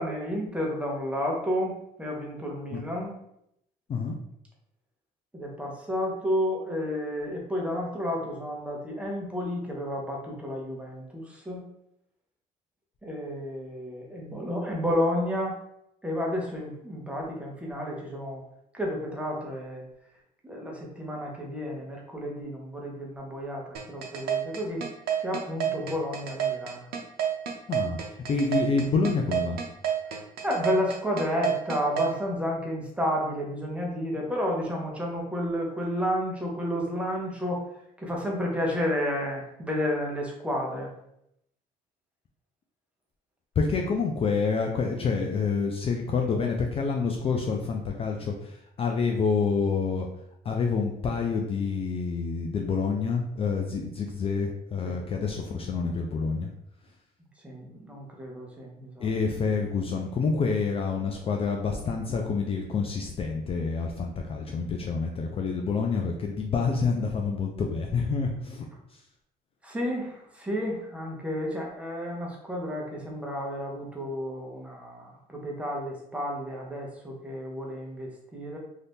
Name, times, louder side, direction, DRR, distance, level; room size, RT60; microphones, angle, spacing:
voice 1, 0.0-3.2 5.3-11.6 13.0-15.6 16.0-18.4 18.7-19.8 20.4-24.8 25.2-26.9 30.4-37.6 38.0-40.9 54.8-55.0 57.4-59.1 69.6-78.6, equal, 5° right, -2 dB, 0.8 m, -31 dB
sound 1, 23.7-32.1, right 9 dB, 70° right, 0.6 m, -28 dB
voice 2, 28.3-29.6 43.6-48.3 48.8-50.1 50.5-56.5 59.0-68.6, left 5 dB, 35° left, 1 dB, 0.4 m, -27 dB
2.7 x 2.4 x 3.5 m, 0.78 s
cardioid pair, 110°, 17 cm